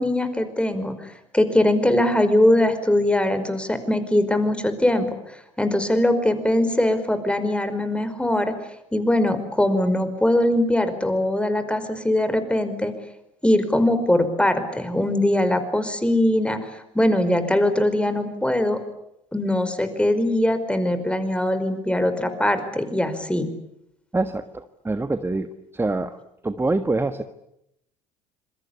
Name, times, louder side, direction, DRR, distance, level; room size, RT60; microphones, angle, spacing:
voice 1, 0.0-5.1 5.6-8.5 8.9-12.9 13.4-18.8 19.3-23.5, left 1 dB, 5° left, 10 dB, 5.2 m, -21 dB
voice 2, 24.1-25.5 25.7-26.2 26.4-27.2, right 2 dB, 15° right, 10 dB, 1.5 m, -25 dB
27.0 x 22.5 x 8.5 m, 0.81 s
hypercardioid pair, 65°, 17 cm